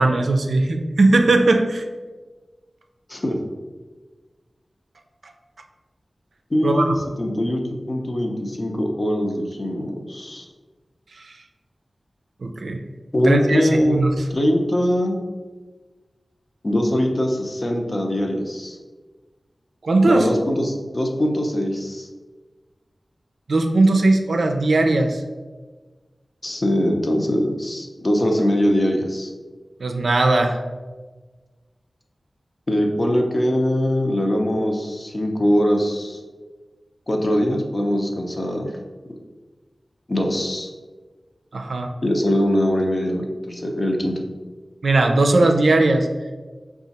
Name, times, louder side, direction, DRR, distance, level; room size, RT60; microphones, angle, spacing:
voice 1, 0.0-1.9 6.6-6.9 11.2-11.3 12.4-12.8 13.2-14.1 19.8-20.3 23.5-25.2 29.8-30.6 41.5-41.9 44.8-46.1, right 2 dB, 85° right, 5 dB, 0.4 m, -18 dB
voice 2, 6.5-7.6 7.9-10.4 13.1-14.0 14.3-15.2 16.6-18.8 20.0-22.1 26.4-29.3 32.7-36.2 37.1-38.7 40.1-40.7 42.0-44.2, equal, 40° left, 2 dB, 0.6 m, -22 dB
4.9 x 2.4 x 4.0 m, 1.3 s
wide cardioid pair, 80°, 0 cm